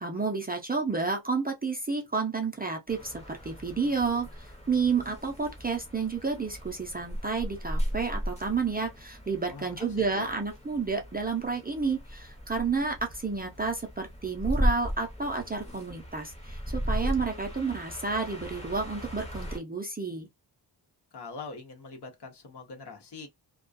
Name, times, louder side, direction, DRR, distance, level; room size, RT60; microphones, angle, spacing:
voice 1, 0.0-20.3, right 4 dB, 20° right, 0.4 m, -30 dB
sound 1, 2.9-19.6, equal, 15° left, 0.8 m, -36 dB
voice 2, 9.5-10.3 21.1-23.3, left 4 dB, 60° left, 0.9 m, -43 dB
2.3 x 2.2 x 2.5 m
wide cardioid pair, 135°, 45 cm